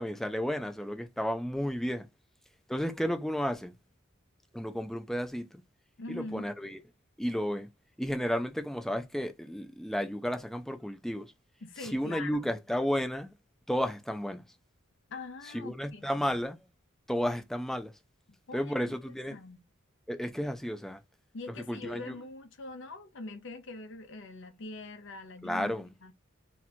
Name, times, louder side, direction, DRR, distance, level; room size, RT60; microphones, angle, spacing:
voice 1, 0.0-2.1 2.7-3.7 4.5-5.6 6.1-6.8 7.2-7.7 8.0-11.3 11.8-13.3 13.7-14.4 15.5-16.6 17.1-17.9 18.5-19.4 20.1-21.0 21.7-22.1 25.4-25.9, equal, ahead, 0.5 m, -32 dB
voice 2, 6.0-6.5 11.6-12.5 15.1-16.4 18.5-19.0 19.3-19.6 21.3-26.1, left 2 dB, 65° left, 0.8 m, -43 dB
2.9 x 2.5 x 4.2 m
head